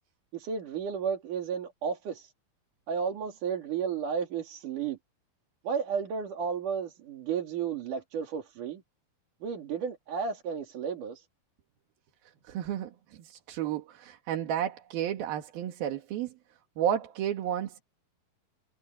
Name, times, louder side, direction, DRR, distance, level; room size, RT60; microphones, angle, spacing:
voice 1, 0.3-2.3 2.9-5.0 5.6-8.8 9.4-11.3, right 6 dB, 60° right, 3.9 m, -33 dB
voice 2, 12.4-16.3 16.8-17.8, right 10 dB, 85° right, 3.7 m, -32 dB
omnidirectional pair, 4.2 m